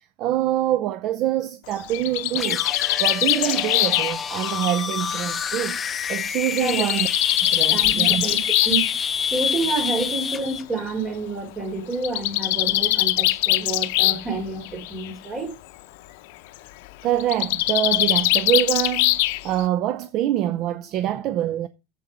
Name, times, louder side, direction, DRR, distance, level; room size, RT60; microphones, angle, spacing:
voice 1, 0.0-2.6 3.0-5.8 6.1-7.1 7.4-8.2 17.0-21.7, right 12 dB, 50° right, 0.7 m, -25 dB
Bird, 1.7-5.5 6.6-8.9 10.0-10.1 10.5-10.6 10.8-10.9 11.9-14.3 14.6-15.1 17.2-19.6, left 19 dB, 70° left, 0.6 m, -22 dB
sound 1, 2.3-10.6, left 7 dB, 25° left, 0.7 m, -27 dB
voice 2, 6.6-6.9 7.7-8.9 9.3-15.5, right 3 dB, 25° right, 4.0 m, -29 dB
7.8 x 7.7 x 5.8 m
supercardioid pair, 125°, 0 cm